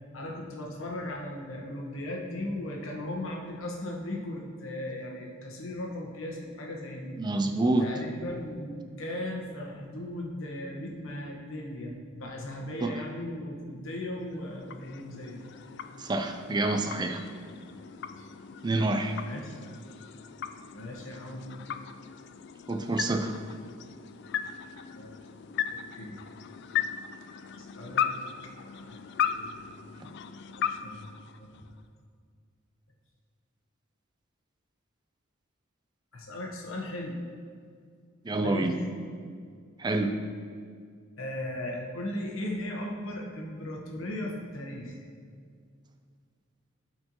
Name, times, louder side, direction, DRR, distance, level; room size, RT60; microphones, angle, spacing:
voice 1, 0.1-7.2 7.8-15.4 18.2-18.3 19.2-19.6 20.7-21.4 24.9-25.1 25.7-26.2 27.8-28.1 28.8-29.0 29.2-29.7 30.8-31.1 31.4-31.6 36.1-37.2 38.4-38.8 41.2-45.0, left 1 dB, 85° left, -1 dB, 1.2 m, -37 dB
voice 2, 7.2-7.9 12.8-12.9 16.0-17.2 18.6-19.2 22.7-23.3 38.2-38.7 39.8-40.1, right 2 dB, 20° right, 5 dB, 0.4 m, -27 dB
sound 1, 14.1-31.9, left 8 dB, 55° left, 0.3 m, -37 dB
12.5 x 4.4 x 3.0 m, 2.1 s
head